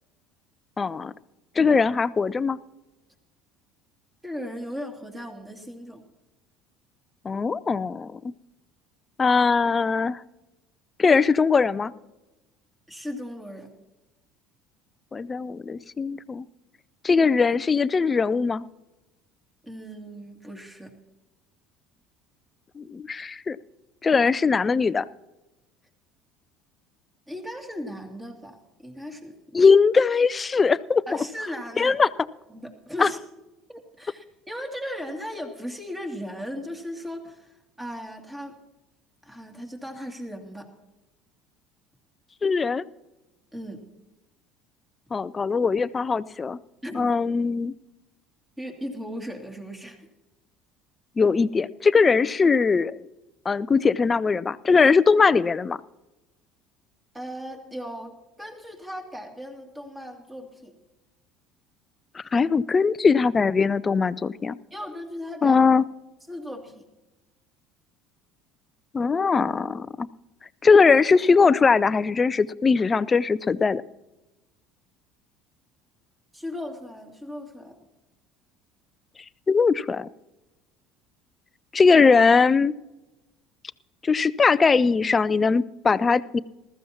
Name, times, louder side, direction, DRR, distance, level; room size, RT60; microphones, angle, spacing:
voice 1, 0.8-1.1 1.6-2.6 7.2-8.2 9.2-10.2 11.0-11.9 15.1-16.5 17.0-18.6 22.8-23.6 24.0-25.1 29.5-31.0 31.8-32.1 33.0-33.1 42.4-42.8 45.1-46.6 46.9-47.7 51.2-53.1 53.5-55.8 62.2-64.6 65.4-65.8 68.9-70.1 70.6-73.8 79.5-80.1 81.7-82.7 84.0-86.4, left 5 dB, 25° left, 19 dB, 0.4 m, -20 dB
voice 2, 4.2-6.0 12.9-13.7 19.6-20.9 27.3-28.6 28.8-29.6 31.1-32.0 32.5-33.2 33.7-38.6 39.2-40.7 43.5-43.8 46.8-47.1 48.6-50.1 57.1-60.7 64.7-65.6 66.3-66.8 76.3-77.8, equal, 10° right, 2 dB, 2.5 m, -37 dB
20.5 x 14.0 x 2.9 m, 1.0 s
figure-of-eight pair, 60°, 0 cm